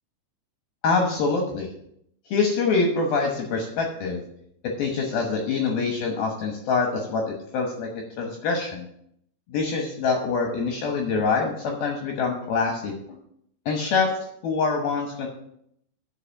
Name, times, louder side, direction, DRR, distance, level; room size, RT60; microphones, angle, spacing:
voice 1, 0.8-1.7 2.3-4.2 4.8-7.9 8.2-8.9 9.5-12.9 13.7-14.1 14.4-15.3, left 4 dB, 70° left, 2 dB, 2.3 m, -25 dB
9.7 x 5.3 x 7.1 m, 0.73 s
omnidirectional pair, 5.7 m